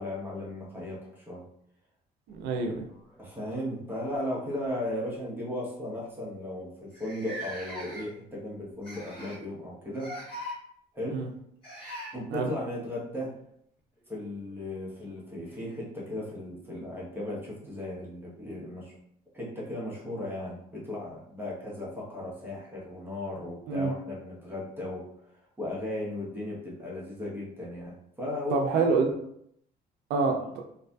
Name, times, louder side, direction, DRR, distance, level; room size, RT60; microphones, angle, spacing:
voice 1, 0.0-1.4 3.2-10.1 10.9-11.3 12.1-13.3 14.1-18.9 19.3-25.1 25.6-28.8, left 1 dB, 10° right, -6 dB, 0.9 m, -36 dB
sound 1, 2.3-3.4 4.5-4.7 5.1-5.2 6.0-6.1 6.2-6.3 6.9-8.3 8.8-9.5 9.9-10.6 11.6-12.1 14.3-14.4 15.4-15.5, equal, 30° left, 1.2 m, -41 dB
voice 2, 2.3-2.9 11.1-11.3 12.3-12.5 23.7-23.9 28.5-29.1 30.1-30.6, right 4 dB, 85° right, 3 dB, 0.5 m, -27 dB
2.6 x 2.5 x 2.2 m, 0.71 s
cardioid pair, 110°, 17 cm